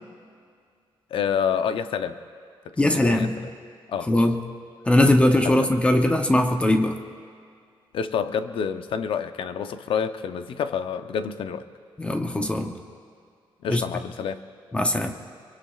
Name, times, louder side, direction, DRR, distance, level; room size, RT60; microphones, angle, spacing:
voice 1, 1.1-2.2 2.6-3.3 3.9-4.1 5.4-5.7 7.9-11.7 13.6-14.4, left 7 dB, 70° left, 10 dB, 0.6 m, -28 dB
voice 2, 2.8-3.5 4.1-4.4 4.9-7.0 12.0-12.8 13.7-13.8 14.7-15.1, left 1 dB, 15° left, 5 dB, 0.6 m, -20 dB
23.5 x 23.0 x 2.4 m, 2.2 s
wide cardioid pair, 165°, 9 cm